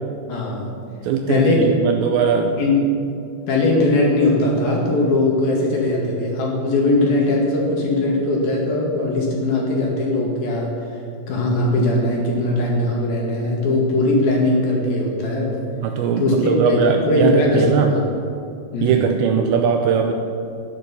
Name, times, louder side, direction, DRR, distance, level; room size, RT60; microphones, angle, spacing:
voice 1, 0.3-0.7 1.3-1.6 2.6-2.7 3.5-10.7 11.3-15.6 16.2-18.0 18.7-19.0, left 2 dB, 55° left, -2 dB, 3.2 m, -20 dB
voice 2, 1.0-2.6 15.8-18.0 18.8-20.1, right 7 dB, 90° right, 4 dB, 2.6 m, -19 dB
13.0 x 10.5 x 6.9 m, 2.6 s
omnidirectional pair, 5.8 m